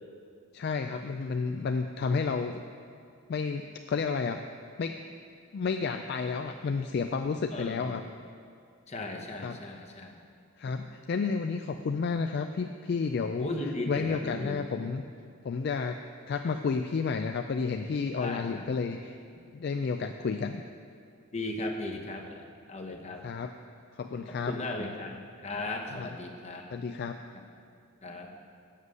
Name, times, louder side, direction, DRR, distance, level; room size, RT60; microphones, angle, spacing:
voice 1, 0.5-2.6 3.3-4.4 4.8-5.0 5.5-8.0 9.4-9.6 10.6-13.5 13.9-15.0 15.4-16.0 16.3-19.2 19.5-20.6 23.2-23.5 24.0-24.6 25.9-26.1 26.7-27.2, left 5 dB, 50° left, 6 dB, 0.3 m, -31 dB
voice 2, 7.5-8.0 8.9-10.1 13.4-14.6 18.2-18.7 21.3-22.4 22.7-23.2 24.3-26.7 28.0-28.3, left 2 dB, 30° left, 2 dB, 0.9 m, -36 dB
8.1 x 7.4 x 6.4 m, 2.3 s
head